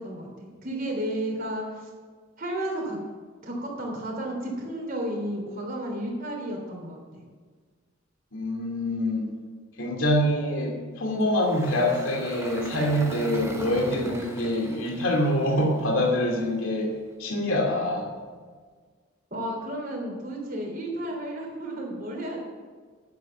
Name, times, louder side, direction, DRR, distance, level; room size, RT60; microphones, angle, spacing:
voice 1, 0.0-1.9 2.4-3.0 3.4-7.0 19.3-22.4, right 1 dB, 45° right, 0 dB, 3.3 m, -32 dB
voice 2, 8.3-9.3 9.8-16.9 17.2-18.1, left 1 dB, 70° left, -1 dB, 2.7 m, -25 dB
Engine, 11.2-16.5, right 1 dB, 15° right, 1.1 m, -40 dB
9.5 x 8.3 x 8.0 m, 1.5 s
head